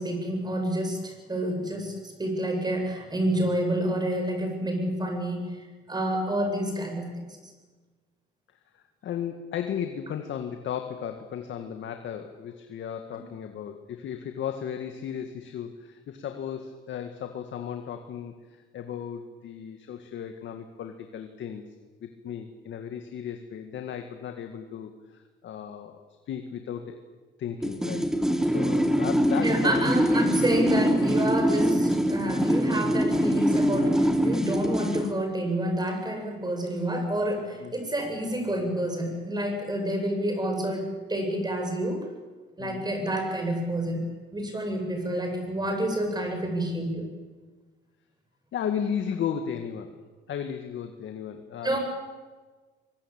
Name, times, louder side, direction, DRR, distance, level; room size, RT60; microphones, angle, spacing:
voice 1, 0.0-7.1 7.4-7.5 29.4-42.1 42.6-47.1 51.6-51.8, right 1 dB, 20° right, 4 dB, 7.6 m, -29 dB
voice 2, 8.7-18.3 18.7-21.6 22.0-27.0 27.4-28.1 28.4-29.9 37.6-37.7 42.6-42.9 48.5-49.9 50.3-51.8, left 8 dB, 70° left, 6 dB, 2.0 m, -35 dB
sound 1, 27.6-35.1, equal, 5° right, 2.6 m, -24 dB
23.5 x 21.5 x 9.0 m, 1.3 s
cardioid pair, 90°, 20 cm